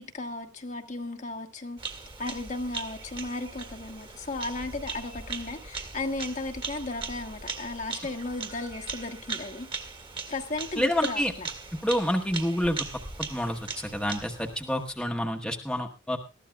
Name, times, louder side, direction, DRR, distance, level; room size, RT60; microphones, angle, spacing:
voice 1, 0.0-9.7 10.3-11.5, left 2 dB, 40° left, 1.2 m, -35 dB
Bird vocalization bird call bird song, 1.8-15.0, right 5 dB, 25° right, 1.8 m, -39 dB
voice 2, 10.8-11.3 11.8-12.9 13.3-16.2, equal, 5° left, 1.1 m, -28 dB
20.5 x 14.0 x 2.3 m
head